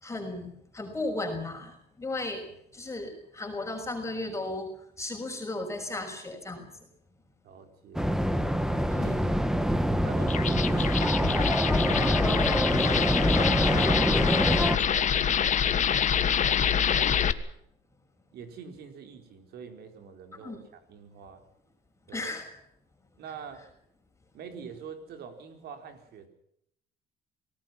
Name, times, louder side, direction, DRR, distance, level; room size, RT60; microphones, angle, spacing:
voice 1, 0.0-2.4 2.7-4.7 5.0-6.7 8.9-9.2 20.4-20.6 22.1-22.6, left 2 dB, 15° left, 3 dB, 6.2 m, -35 dB
voice 2, 7.4-8.1 9.0-9.5 10.0-11.6 12.0-17.3 18.3-21.4 22.1-22.3 23.2-23.7 24.3-26.3, right 6 dB, 70° right, 6 dB, 4.7 m, -45 dB
sound 1, 7.9-14.8, equal, 5° right, 1.7 m, -25 dB
sound 2, 10.2-17.3, left 8 dB, 45° left, 1.5 m, -26 dB
27.0 x 19.0 x 5.9 m, 0.72 s
cardioid pair, 110°, 17 cm